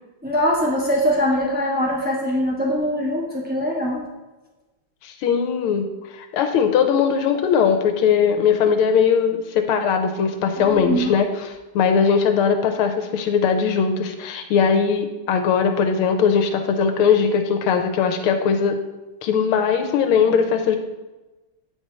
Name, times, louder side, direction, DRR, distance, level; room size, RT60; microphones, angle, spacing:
voice 1, 0.2-4.0 10.6-11.1, equal, 15° right, -6 dB, 0.3 m, -22 dB
voice 2, 5.0-5.9 6.1-11.5 11.7-18.8 19.2-20.8, left 6 dB, 85° left, 6 dB, 1.6 m, -19 dB
9.1 x 4.8 x 4.3 m, 1.1 s
omnidirectional pair, 2.4 m